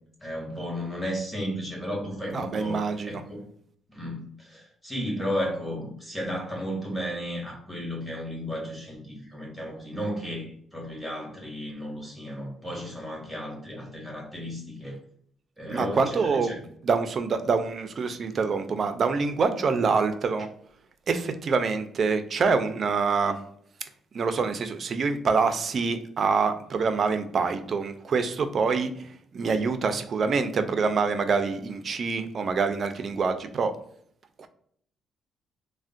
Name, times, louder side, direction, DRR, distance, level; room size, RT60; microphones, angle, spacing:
voice 1, 0.2-2.8 3.1-3.5 3.9-15.0 15.6-16.6, equal, ahead, -3 dB, 1.3 m, -34 dB
voice 2, 2.3-3.2 15.7-16.5 16.8-20.5 21.1-23.3 24.1-28.9 29.3-33.7 34.4-34.5, right 5 dB, 50° right, 8 dB, 0.4 m, -26 dB
3.5 x 2.1 x 2.4 m, 0.66 s
cardioid pair, 90°, 0 cm